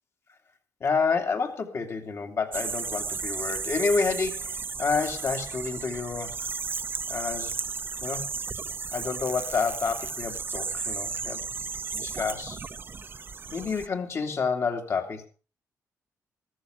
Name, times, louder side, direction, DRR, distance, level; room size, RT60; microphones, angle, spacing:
voice 1, 0.8-6.4 7.1-7.6 8.0-8.3 8.9-11.6 11.9-12.6 13.5-15.3, left 5 dB, 45° left, 4 dB, 2.6 m, -29 dB
sound 1, 2.5-13.9, right 5 dB, 35° right, 0.8 m, -34 dB
14.0 x 14.0 x 4.9 m, 0.35 s
cardioid pair, 130°, 6 cm